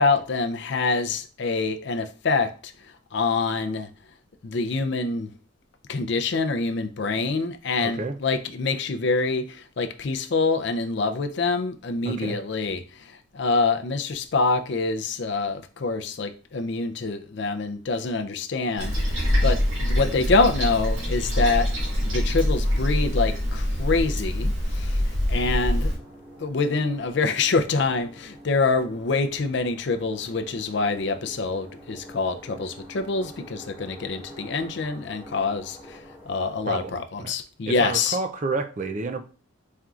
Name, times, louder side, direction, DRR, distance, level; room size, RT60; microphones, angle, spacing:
voice 1, 0.0-2.7 3.1-3.9 4.4-5.3 5.9-21.7 22.0-25.0 25.3-25.9 26.4-36.0 36.3-38.2, left 3 dB, 55° left, 0.5 m, -26 dB
voice 2, 7.8-8.2 12.0-12.4 36.7-37.3 37.7-39.2, right 3 dB, 35° right, 0.4 m, -30 dB
Toilet flush, 18.8-26.0, left 1 dB, 75° right, 1.7 m, -24 dB
sound 1, 25.7-37.0, equal, 10° right, 1.4 m, -46 dB
4.4 x 3.7 x 2.4 m
head